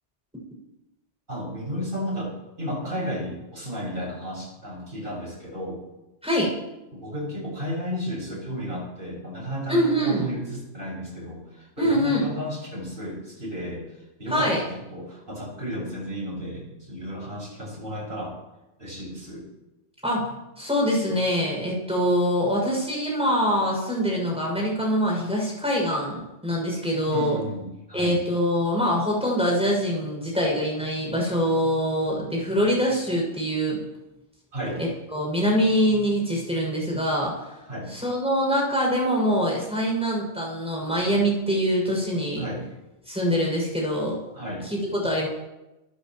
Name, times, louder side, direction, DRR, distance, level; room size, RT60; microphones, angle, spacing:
voice 1, 1.3-2.3 2.6-5.8 6.9-13.8 14.2-18.4 18.8-19.5 27.1-28.2 34.5-34.8 37.7-37.9 42.4-42.6 44.3-44.6, equal, 45° right, -4 dB, 7.1 m, -33 dB
voice 2, 9.7-10.3 11.8-12.3 14.3-14.6 20.0-27.4 27.9-33.8 34.8-37.3 37.9-42.4 43.1-44.2 44.6-45.3, equal, 5° right, -4 dB, 7.1 m, -24 dB
27.0 x 14.5 x 3.2 m, 0.98 s
omnidirectional pair, 1.3 m